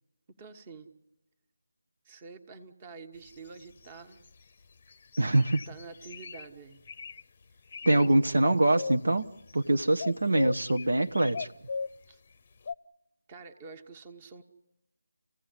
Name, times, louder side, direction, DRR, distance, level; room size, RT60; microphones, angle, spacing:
voice 1, 0.4-0.9 2.0-4.2 5.7-6.8 7.8-8.2 12.1-12.2 13.3-14.4, right 4 dB, 20° right, 10 dB, 1.5 m, -47 dB
sound 1, 3.2-4.5 4.9-6.5 6.9-7.2 7.6-8.1 8.3-9.6 10.0-12.1 12.7-12.8, left 4 dB, 35° left, 0.8 m, -38 dB
voice 2, 5.2-5.6 7.9-9.3 9.5-11.5, right 1 dB, 70° right, 7 dB, 1.0 m, -24 dB
29.0 x 16.0 x 9.7 m, 1.0 s
figure-of-eight pair, 160°, 0 cm